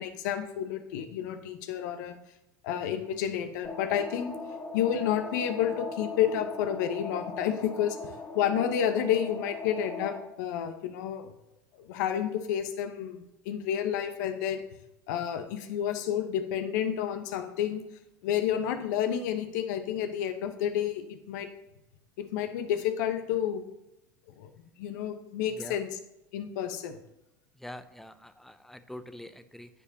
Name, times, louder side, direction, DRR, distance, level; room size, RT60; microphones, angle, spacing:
voice 1, 0.0-2.1 2.6-4.3 4.7-11.3 11.9-14.6 15.1-17.8 18.2-21.5 22.2-23.6 24.4-24.5 24.8-26.0 26.3-27.0, left 9 dB, 65° left, 8 dB, 1.0 m, -30 dB
sound 1, 3.6-10.2, left 3 dB, 20° left, 1.6 m, -39 dB
voice 2, 27.6-29.7, left 1 dB, ahead, 11 dB, 0.6 m, -44 dB
14.0 x 5.0 x 2.8 m, 0.89 s
hypercardioid pair, 85°, 10 cm